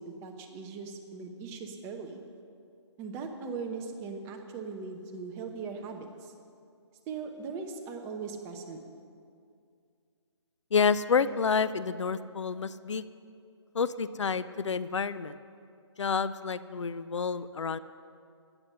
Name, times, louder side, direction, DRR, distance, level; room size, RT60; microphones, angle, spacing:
voice 1, 0.0-2.2 3.0-6.3 7.1-8.8, right 5 dB, 15° right, 4 dB, 0.9 m, -39 dB
voice 2, 10.7-13.0 13.7-15.4 16.0-17.8, left 5 dB, 80° left, 15 dB, 0.6 m, -29 dB
14.0 x 9.8 x 5.6 m, 2.4 s
hypercardioid pair, 150°, 15 cm